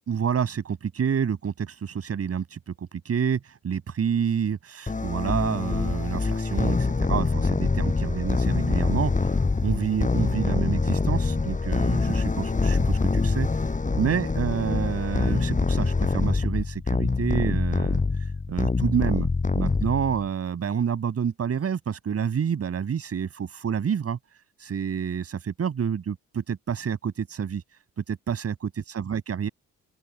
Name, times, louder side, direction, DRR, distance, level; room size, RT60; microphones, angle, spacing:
voice 1, 0.1-2.6 2.9-9.3 9.6-13.5 14.0-18.0 18.5-19.3 19.5-24.2 24.6-27.6 28.1-29.5, right 7 dB, 50° right, 7.6 m, -28 dB
sound 1, 4.9-20.3, left 3 dB, 25° left, 7.8 m, -25 dB
open air
cardioid pair, 90°, 30 cm